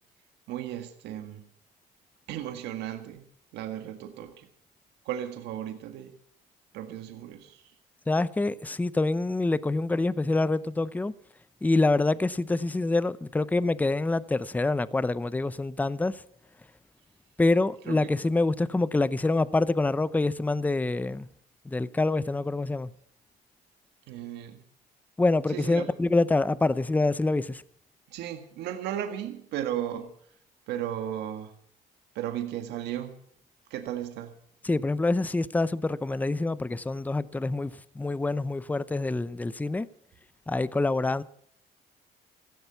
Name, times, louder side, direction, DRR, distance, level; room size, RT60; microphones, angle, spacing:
voice 1, 0.5-1.5 2.3-3.2 3.5-4.5 5.1-6.1 6.7-7.8 17.9-18.1 24.1-24.6 25.5-25.9 28.1-30.1 30.7-31.5 32.2-33.2 33.7-34.3, right 11 dB, 85° right, 1.8 m, -35 dB
voice 2, 8.1-11.1 11.6-16.2 17.4-21.3 21.6-22.9 25.2-27.6 34.6-39.9 40.5-41.2, left 2 dB, 10° left, 0.6 m, -26 dB
15.5 x 15.0 x 5.8 m
cardioid pair, 110°, 17 cm